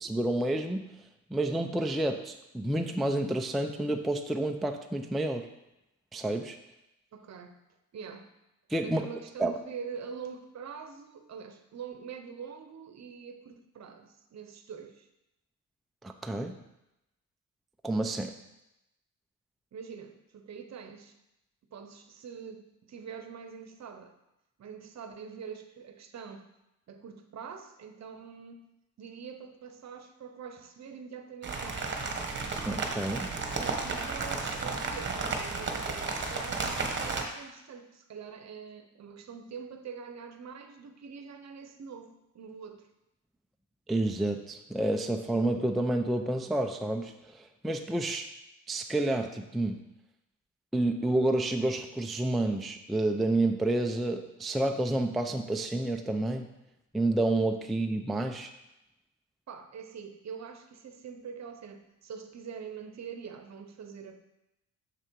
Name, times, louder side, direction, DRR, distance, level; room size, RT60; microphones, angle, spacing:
voice 1, 0.0-0.9 1.3-5.5 6.1-6.6 8.7-9.1 9.4-9.5 16.0-16.6 17.8-18.3 32.7-33.3 43.9-48.3 48.7-49.8 50.7-56.5 56.9-58.5, right 1 dB, ahead, 4 dB, 0.4 m, -29 dB
voice 2, 7.1-7.6 7.9-8.3 8.8-15.1 19.7-21.2 21.7-24.1 24.6-26.5 26.9-28.7 29.0-32.1 33.5-42.9 59.5-64.2, right 6 dB, 50° right, 7 dB, 0.8 m, -44 dB
sound 1, 31.4-37.2, right 4 dB, 30° right, 1.1 m, -33 dB
6.8 x 6.4 x 4.6 m, 0.91 s
cardioid pair, 130°, 35 cm